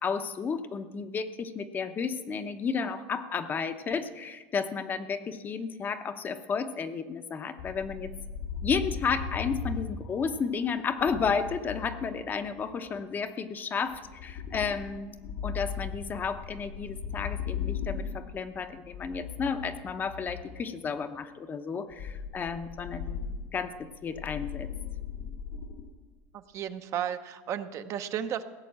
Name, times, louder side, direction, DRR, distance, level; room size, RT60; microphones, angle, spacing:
voice 1, 0.0-8.1 8.6-15.1 15.4-23.2 23.5-24.7, left 5 dB, 25° left, 9 dB, 0.8 m, -32 dB
sound 1, 7.6-12.8 13.9-20.7 21.9-25.9, left 7 dB, 80° left, 1.9 m, -38 dB
voice 2, 26.3-28.4, right 9 dB, 40° right, 9 dB, 0.8 m, -34 dB
16.5 x 6.8 x 8.7 m, 1.3 s
supercardioid pair, 140°, 8 cm